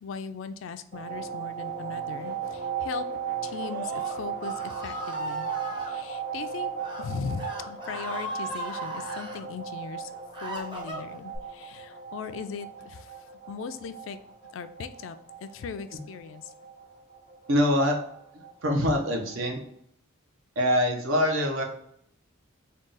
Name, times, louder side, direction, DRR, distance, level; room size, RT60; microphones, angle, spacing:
voice 1, 0.0-3.1 3.4-6.7 7.0-10.1 10.4-14.2 14.5-16.5, left 6 dB, 70° left, 11 dB, 0.3 m, -38 dB
sound 1, 0.9-19.5, right 7 dB, 55° right, 1.3 m, -37 dB
Screaming, 3.5-5.9 6.7-7.0 7.3-9.4 10.0-11.4, right 1 dB, 25° right, 0.6 m, -37 dB
voice 2, 17.5-18.0 18.3-19.6 20.6-21.6, equal, 75° right, 2 dB, 0.8 m, -24 dB
3.6 x 2.3 x 3.8 m, 0.73 s
head